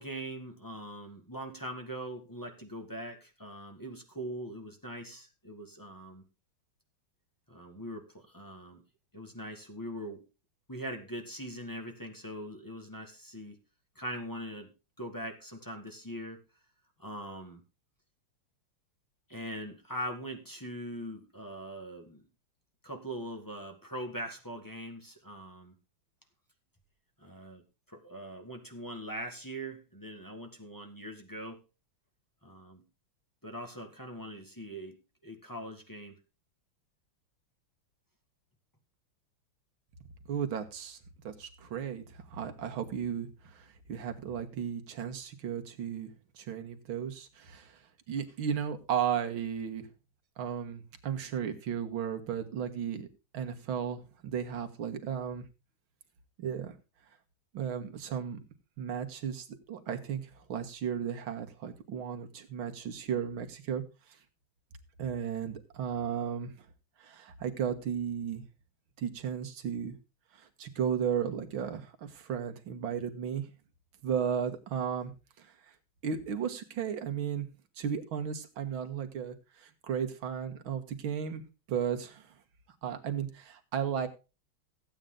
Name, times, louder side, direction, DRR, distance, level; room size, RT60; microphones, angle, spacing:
voice 1, 0.0-6.2 7.5-8.8 9.1-10.2 10.7-13.6 13.9-14.7 15.0-16.4 17.0-17.6 19.3-22.2 22.8-25.7 27.2-31.6 32.4-32.8 33.4-36.2, equal, 10° left, 4 dB, 1.5 m, -42 dB
voice 2, 40.3-41.0 41.2-46.1 46.4-47.8 48.1-49.9 50.4-53.1 53.3-55.4 56.4-56.7 57.5-58.4 58.8-63.8 65.0-66.5 67.0-68.4 69.0-70.0 70.3-73.5 74.0-75.1 75.4-75.5 76.0-77.5 77.8-82.3 82.8-84.1, right 8 dB, 70° right, 6 dB, 2.1 m, -35 dB
14.5 x 8.9 x 3.8 m, 0.31 s
omnidirectional pair, 2.3 m